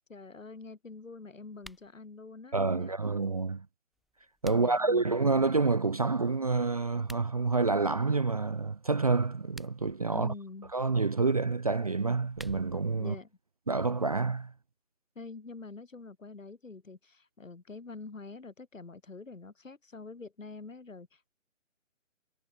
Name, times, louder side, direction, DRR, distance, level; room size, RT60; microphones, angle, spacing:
voice 1, 0.1-2.9 4.5-5.1 10.1-10.7 13.0-13.3 15.2-21.3, left 3 dB, 80° left, 7.3 m, -46 dB
sound 1, 1.5-1.9 3.9-4.9 6.9-7.3 9.3-10.0 12.0-12.9, equal, ahead, 5.5 m, -52 dB
voice 2, 2.5-3.6 4.4-10.3 10.7-13.1 13.7-14.5, right 3 dB, 30° right, 0.5 m, -28 dB
figure-of-eight pair, 150°, 38 cm